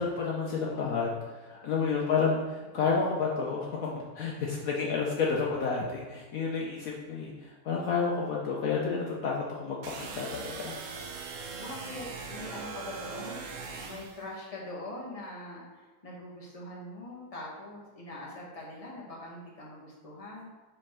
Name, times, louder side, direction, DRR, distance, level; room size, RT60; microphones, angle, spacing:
voice 1, 0.0-10.8, left 5 dB, 65° left, -2 dB, 1.2 m, -30 dB
sound 1, 9.8-14.2, right 4 dB, 60° right, 1.0 m, -40 dB
voice 2, 11.6-20.5, left 1 dB, 25° left, -4 dB, 1.5 m, -43 dB
5.5 x 4.3 x 5.6 m, 1.3 s
omnidirectional pair, 1.7 m